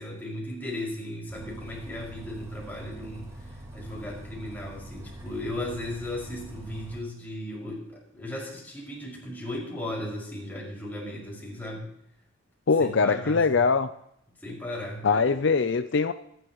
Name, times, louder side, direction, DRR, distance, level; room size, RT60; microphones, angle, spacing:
voice 1, 0.0-11.9 12.8-13.6 14.4-15.3, left 1 dB, 10° left, -4 dB, 5.7 m, -36 dB
Bus, 1.3-7.0, right 1 dB, 15° right, 3.0 m, -44 dB
voice 2, 12.7-13.9 15.0-16.1, left 4 dB, 65° left, 11 dB, 0.6 m, -22 dB
26.0 x 11.5 x 3.1 m, 0.73 s
head